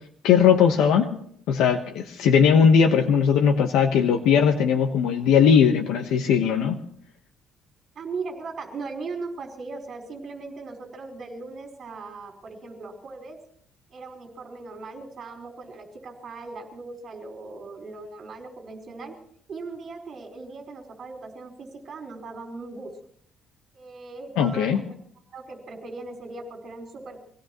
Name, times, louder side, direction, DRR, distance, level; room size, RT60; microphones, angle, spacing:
voice 1, 0.2-1.1 1.5-6.8 24.4-24.8, left 7 dB, 90° left, 4 dB, 1.2 m, -19 dB
voice 2, 3.1-3.4 7.9-13.4 13.9-19.1 19.5-22.9 23.7-24.8 25.3-27.2, right 3 dB, 35° right, 1 dB, 4.6 m, -38 dB
25.5 x 17.0 x 3.1 m, 0.63 s
cardioid pair, 165°, 0 cm